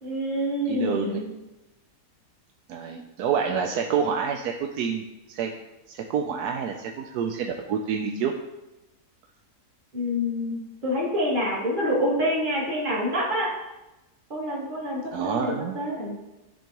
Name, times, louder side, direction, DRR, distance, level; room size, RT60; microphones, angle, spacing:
voice 1, 0.0-1.3 9.9-13.5 14.3-16.2, equal, 30° right, -5 dB, 2.0 m, -27 dB
voice 2, 0.7-1.2 2.7-5.5 5.9-8.3 15.1-15.8, right 7 dB, 80° right, 3 dB, 1.1 m, -28 dB
13.5 x 4.5 x 3.0 m, 1.0 s
omnidirectional pair, 1.7 m